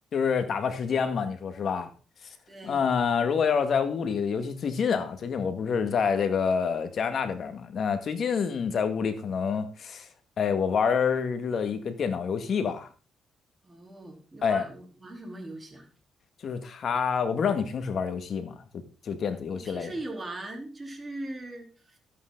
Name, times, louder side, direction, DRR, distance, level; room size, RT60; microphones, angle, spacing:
voice 1, 0.1-1.9 2.6-10.1 10.4-12.9 14.4-14.6 16.4-18.6 19.0-19.9, left 6 dB, 55° left, 1.8 m, -27 dB
voice 2, 2.5-2.9 13.6-15.9 19.5-22.0, right 2 dB, 20° right, 3.6 m, -40 dB
12.5 x 8.4 x 3.9 m
cardioid pair, 90°, 0 cm